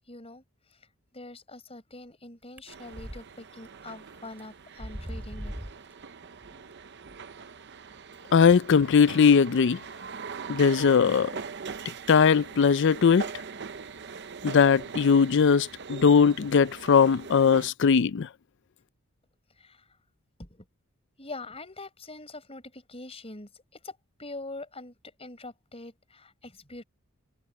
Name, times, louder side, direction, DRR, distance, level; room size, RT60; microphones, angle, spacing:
voice 1, 0.1-0.4 1.1-5.5 6.6-6.7 7.1-7.2 19.6-19.8 20.4-20.6 21.2-26.8, left 2 dB, 25° left, 6.0 m, -44 dB
sound 1, 2.6-3.2 3.6-3.7 4.4-4.5 4.8-5.9, equal, 10° right, 3.5 m, -38 dB
sound 2, 2.7-17.7, right 5 dB, 50° right, 0.8 m, -42 dB
voice 2, 8.3-9.8 10.5-11.3 12.1-13.3 14.4-18.3, left 6 dB, 55° left, 0.4 m, -20 dB
head